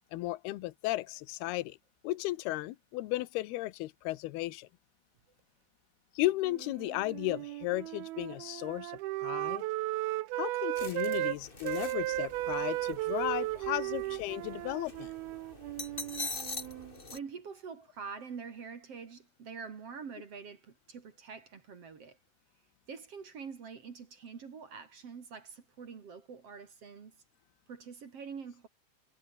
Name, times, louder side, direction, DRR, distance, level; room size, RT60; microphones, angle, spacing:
voice 1, 0.1-1.8 2.0-4.7 6.2-9.6 10.3-15.1, left 17 dB, 75° left, 2.5 m, -35 dB
Wind instrument woodwind instrument, 6.4-11.4 11.6-16.9, right 17 dB, 80° right, 2.2 m, -35 dB
sound 1, 10.7-17.2, left 3 dB, 25° left, 1.1 m, -44 dB
voice 2, 17.1-22.2 22.9-27.2 27.7-28.7, right 6 dB, 45° right, 2.4 m, -45 dB
omnidirectional pair, 5.5 m